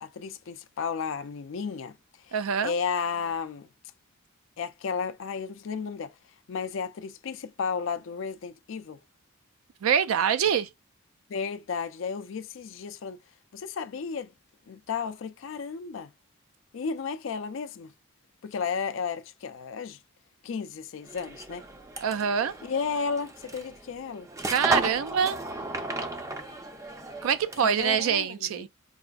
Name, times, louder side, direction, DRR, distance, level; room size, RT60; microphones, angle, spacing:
voice 1, 0.0-1.9 2.3-2.4 2.6-3.7 4.6-6.1 6.5-9.0 11.3-13.2 13.5-14.3 14.7-16.1 16.7-17.9 18.4-20.0 20.4-21.6 22.6-24.3 27.6-28.7, left 5 dB, 65° left, 0.4 m, -33 dB
voice 2, 2.3-2.7 9.8-10.7 22.0-22.5 24.5-25.4 27.2-28.7, right 7 dB, 85° right, 0.4 m, -25 dB
sound 1, 21.1-27.9, right 2 dB, 15° right, 0.4 m, -34 dB
4.8 x 2.4 x 2.3 m
head